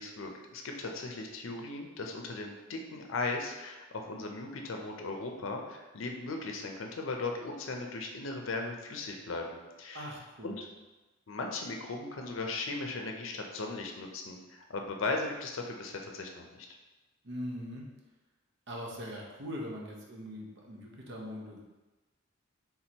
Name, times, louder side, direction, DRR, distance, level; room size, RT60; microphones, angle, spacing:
voice 1, 0.0-10.1 10.4-10.7 11.3-16.7, left 3 dB, 70° left, 2 dB, 0.6 m, -37 dB
voice 2, 9.9-10.6 17.2-17.8 18.7-21.6, equal, 60° right, -1 dB, 0.8 m, -41 dB
3.7 x 2.9 x 4.3 m, 1.1 s
head